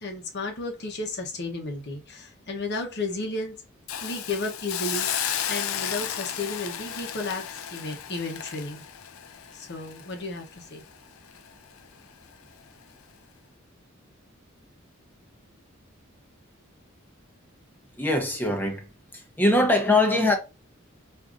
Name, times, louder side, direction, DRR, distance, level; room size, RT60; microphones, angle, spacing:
voice 1, 0.0-3.6 4.0-5.1 5.5-8.8 9.5-10.8, left 2 dB, 55° left, 0.9 m, -33 dB
Hiss, 3.9-10.9 11.3-11.5, left 9 dB, 75° left, 0.4 m, -33 dB
voice 2, 17.9-18.9 19.1-20.4, left 2 dB, 10° left, 0.8 m, -22 dB
4.8 x 2.6 x 2.5 m
head